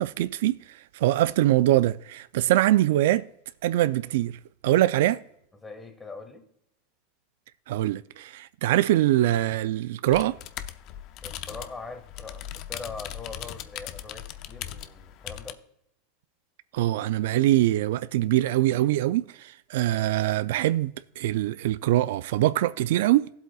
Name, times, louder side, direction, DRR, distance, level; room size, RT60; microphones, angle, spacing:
voice 1, 0.0-3.3 3.6-5.2 7.7-10.4 16.7-23.3, right 14 dB, 70° right, 0.3 m, -23 dB
voice 2, 5.6-6.5 11.2-15.6, left 4 dB, 10° left, 1.4 m, -42 dB
sound 1, 10.1-15.5, left 11 dB, 45° left, 0.5 m, -39 dB
16.5 x 7.9 x 2.3 m
supercardioid pair, 150°, 0 cm